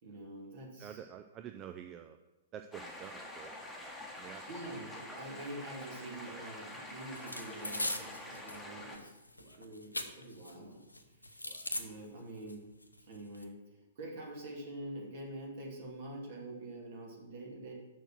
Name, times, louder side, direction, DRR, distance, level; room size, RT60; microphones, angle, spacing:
voice 1, 0.0-1.1 4.5-9.2 9.5-10.8 11.2-11.4 11.7-12.6 13.0-13.6 14.0-17.7, right 1 dB, 50° right, -1 dB, 2.7 m, -46 dB
voice 2, 0.8-2.2 2.5-3.5 4.2-4.4 9.4-9.6 11.4-11.7, right 9 dB, 25° right, 6 dB, 0.5 m, -48 dB
sound 1, 2.7-9.0, left 1 dB, ahead, 1.4 m, -47 dB
sound 2, 7.1-8.6 8.9-10.5 10.9-11.8 12.5-12.6 12.8-13.4, left 1 dB, 90° left, 0.8 m, -40 dB
6.6 x 6.3 x 6.3 m, 1.0 s
figure-of-eight pair, 115°, 0 cm